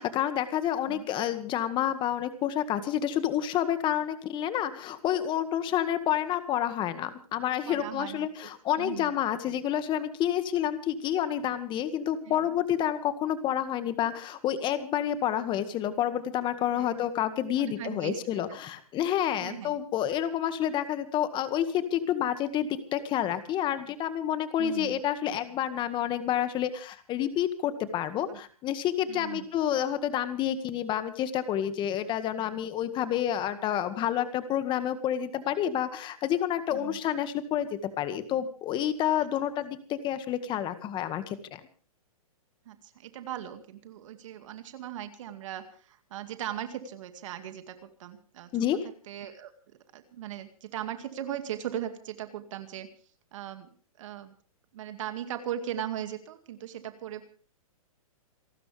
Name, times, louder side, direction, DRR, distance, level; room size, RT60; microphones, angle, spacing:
voice 1, 0.0-41.6 48.5-48.8, left 10 dB, 25° left, 10 dB, 1.9 m, -29 dB
voice 2, 7.6-8.3 8.8-9.1 12.3-12.6 16.7-17.0 17.6-18.6 19.4-19.7 24.6-25.0 28.3-28.4 29.1-29.5 36.7-37.0 42.7-48.5 49.1-52.9 53.3-53.7 54.0-54.3 54.7-57.3, right 11 dB, 55° right, 8 dB, 2.2 m, -38 dB
28.0 x 12.5 x 3.4 m, 0.41 s
hypercardioid pair, 135°, 19 cm